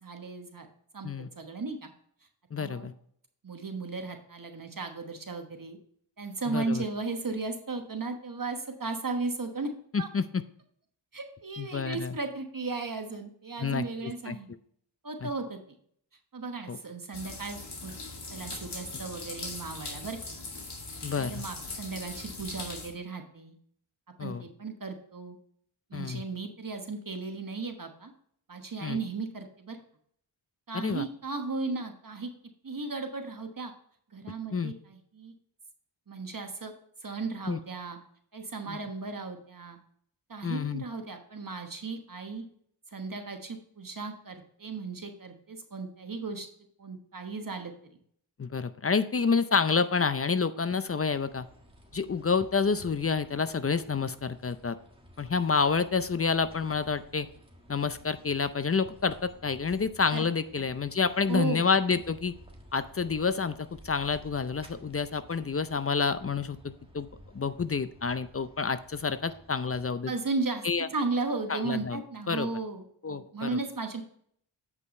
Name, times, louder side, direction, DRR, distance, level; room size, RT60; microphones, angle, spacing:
voice 1, 0.0-0.7 0.9-1.1 1.3-1.9 2.6-2.9 3.4-5.8 6.2-9.7 10.0-10.1 11.1-14.5 15.0-15.6 16.3-17.9 18.3-20.2 21.1-23.5 24.2-25.4 25.9-28.1 28.5-29.8 30.7-32.3 32.6-33.7 34.1-35.3 36.1-36.7 37.0-38.0 38.3-39.8 40.3-42.5 42.9-46.5 46.8-48.0 60.1-60.3 61.3-61.7 70.1-74.0, right 3 dB, 40° right, 5 dB, 1.2 m, -35 dB
voice 2, 2.5-2.9 6.5-6.8 9.9-10.4 11.6-12.1 13.6-13.9 14.3-14.4 15.2-15.3 16.7-16.8 21.0-21.4 24.2-24.4 25.9-26.2 28.8-29.0 30.7-31.0 34.5-34.7 37.5-37.6 40.4-40.8 48.4-51.5 51.9-54.8 55.2-57.3 57.7-62.3 62.7-67.1 67.3-70.1 70.6-70.9 71.5-72.0 72.3-72.5 73.0-73.6, left 5 dB, 30° left, 13 dB, 0.5 m, -28 dB
sound 1, 17.1-22.9, left 3 dB, 55° left, 2.2 m, -40 dB
sound 2, 50.9-69.9, equal, 10° right, 1.6 m, -54 dB
8.4 x 5.5 x 4.2 m, 0.64 s
cardioid pair, 55°, 49 cm